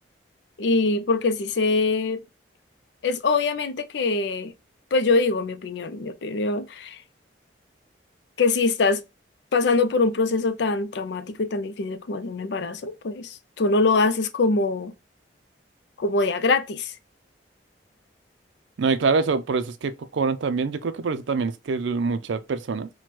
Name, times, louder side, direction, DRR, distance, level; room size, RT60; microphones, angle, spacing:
voice 1, 0.6-2.2 3.0-4.5 4.9-7.0 8.4-9.0 9.5-14.9 16.0-16.9, left 3 dB, 70° left, 0.5 m, -23 dB
voice 2, 18.8-22.9, right 4 dB, 85° right, 0.4 m, -25 dB
5.9 x 2.2 x 3.0 m
head